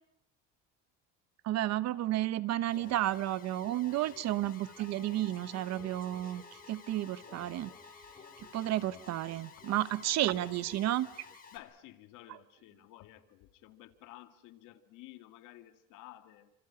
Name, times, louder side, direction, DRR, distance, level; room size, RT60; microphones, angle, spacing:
voice 1, 1.4-7.7 8.5-11.3, right 14 dB, 55° right, 15 dB, 1.1 m, -32 dB
Alarm, 2.7-11.6, left 6 dB, 30° left, 4.9 m, -53 dB
sound 1, 4.3-9.3, left 2 dB, ahead, 7.9 m, -59 dB
voice 2, 11.5-16.5, left 15 dB, 70° left, 8 dB, 2.4 m, -53 dB
30.0 x 26.5 x 6.0 m, 0.76 s
cardioid pair, 135°, 32 cm